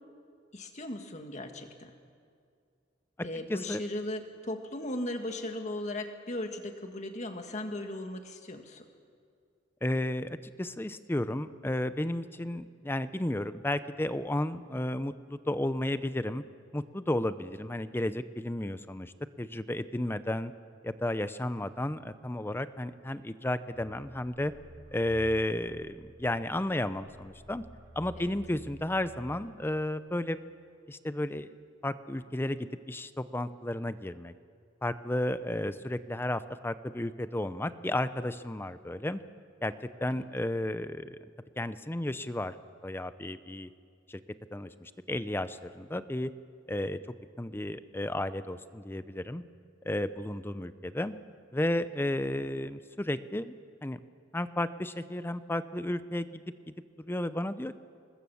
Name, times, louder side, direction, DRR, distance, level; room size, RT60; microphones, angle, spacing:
voice 1, 0.5-1.9 3.2-8.9, left 1 dB, 40° left, 5 dB, 1.8 m, -37 dB
voice 2, 3.5-3.8 9.8-16.4 16.7-19.1 19.4-20.5 20.8-24.5 24.9-27.6 28.0-30.4 30.9-31.5 31.8-34.3 34.8-39.2 39.6-39.7 40.0-41.2 41.6-42.6 42.8-43.7 44.1-44.2 44.5-46.3 46.7-47.0 47.4-49.4 49.8-51.1 51.5-53.5 53.8-54.0 54.3-56.4 57.0-57.8, left 1 dB, 10° left, 13 dB, 0.5 m, -33 dB
sound 1, 23.7-30.2, equal, 40° right, 7.7 m, -52 dB
25.5 x 20.5 x 7.1 m, 2.2 s
head